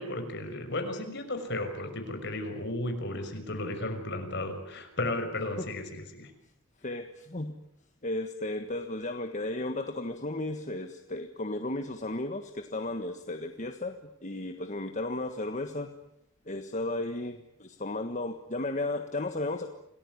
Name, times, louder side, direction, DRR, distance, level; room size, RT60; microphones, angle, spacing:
voice 1, 0.0-6.3, left 2 dB, 55° left, 6 dB, 6.0 m, -34 dB
voice 2, 6.8-7.6 8.0-15.9 16.4-19.7, left 2 dB, 35° left, 7 dB, 1.5 m, -34 dB
28.0 x 19.0 x 9.8 m, 0.82 s
head